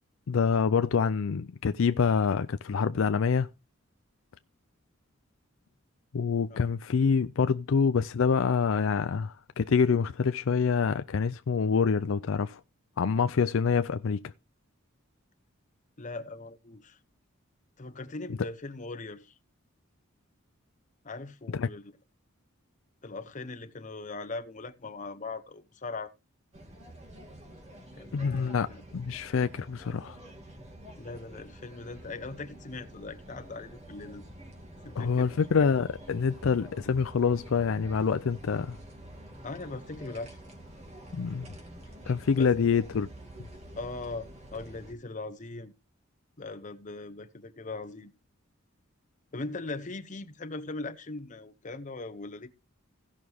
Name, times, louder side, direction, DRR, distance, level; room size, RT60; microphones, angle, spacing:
voice 1, 0.3-3.5 6.1-12.6 13.0-14.2 21.5-21.7 28.1-28.7 28.9-30.2 35.0-38.8 41.1-41.5 42.1-43.1, left 5 dB, 70° left, 0.4 m, -26 dB
voice 2, 16.0-17.0 17.8-19.3 21.0-21.9 23.0-26.1 27.9-28.8 31.0-34.2 34.8-35.4 39.4-40.4 42.4-42.5 43.8-45.7 46.4-48.1 49.3-52.5, left 3 dB, 40° left, 0.9 m, -40 dB
sound 1, 26.5-44.9, right 1 dB, 35° right, 2.7 m, -48 dB
16.5 x 6.2 x 3.5 m
head